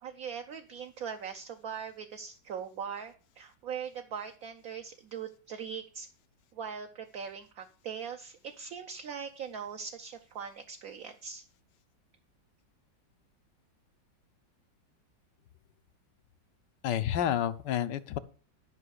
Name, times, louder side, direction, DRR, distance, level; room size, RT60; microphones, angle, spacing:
voice 1, 0.0-6.1 6.5-11.4, right 7 dB, 60° right, 5 dB, 1.0 m, -41 dB
voice 2, 16.8-18.2, left 10 dB, 75° left, 12 dB, 1.3 m, -29 dB
11.5 x 5.4 x 6.5 m, 0.38 s
omnidirectional pair, 2.1 m